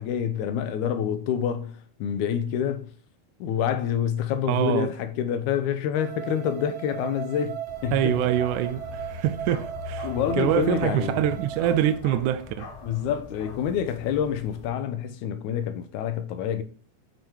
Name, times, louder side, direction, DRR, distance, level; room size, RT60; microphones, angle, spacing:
voice 1, 0.0-2.9 3.4-8.3 10.0-11.4 12.8-16.6, left 9 dB, 80° left, 2.2 m, -27 dB
voice 2, 4.5-4.9 7.9-10.1 10.4-12.7, right 11 dB, 80° right, 2.0 m, -25 dB
sound 1, 6.0-11.9, right 10 dB, 65° right, 2.0 m, -37 dB
Bark, 7.7-14.7, left 5 dB, 60° left, 2.4 m, -42 dB
9.4 x 5.1 x 4.6 m
omnidirectional pair, 3.6 m